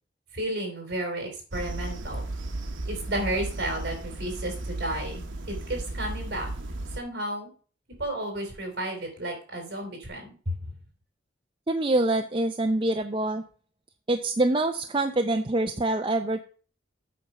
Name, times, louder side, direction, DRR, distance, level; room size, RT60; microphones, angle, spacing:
voice 1, 0.3-2.3 2.9-6.5 7.0-7.5 8.0-10.5, right 1 dB, 55° right, 3 dB, 3.8 m, -32 dB
sound 1, 1.5-7.0, right 2 dB, 85° right, 1.0 m, -35 dB
voice 2, 11.7-13.4 14.1-16.4, right 2 dB, 25° right, 5 dB, 0.5 m, -25 dB
8.5 x 5.4 x 5.8 m, 0.39 s
head